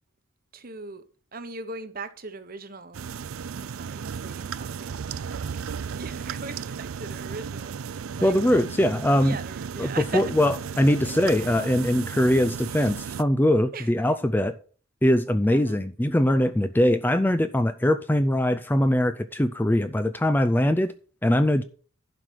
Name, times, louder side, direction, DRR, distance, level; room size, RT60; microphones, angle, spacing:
voice 1, 0.5-1.0 1.3-3.1 3.6-5.4 5.7-8.6 9.2-10.3 11.0-11.1 11.4-11.5 13.7-13.9 15.5-15.9, right 3 dB, 45° right, 1.0 m, -39 dB
sound 1, 2.9-13.2, right 6 dB, 85° right, 0.4 m, -35 dB
voice 2, 8.2-9.4 9.8-14.6 15.0-20.9 21.2-21.6, left 1 dB, 10° left, 0.4 m, -22 dB
11.5 x 5.0 x 6.2 m
head